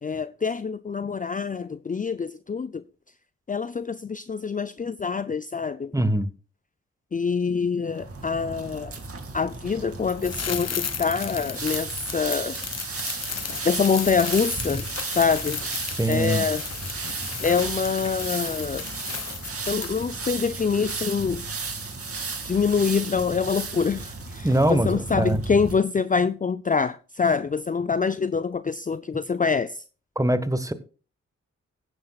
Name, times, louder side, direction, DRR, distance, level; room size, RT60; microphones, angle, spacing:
voice 1, 0.0-2.8 3.5-5.9 7.1-8.9 9.3-12.6 13.6-15.6 16.1-16.6 17.4-18.8 19.7-21.4 22.4-29.8, left 5 dB, 30° left, 0.5 m, -25 dB
voice 2, 5.9-6.3 15.9-16.5 24.4-25.4 30.1-30.7, right 1 dB, 10° right, 1.4 m, -23 dB
sound 1, 7.9-25.7, right 4 dB, 50° right, 2.3 m, -34 dB
sound 2, 10.2-20.2 20.4-20.5, left 6 dB, 60° left, 1.4 m, -34 dB
16.0 x 9.6 x 2.4 m
supercardioid pair, 45°, 29 cm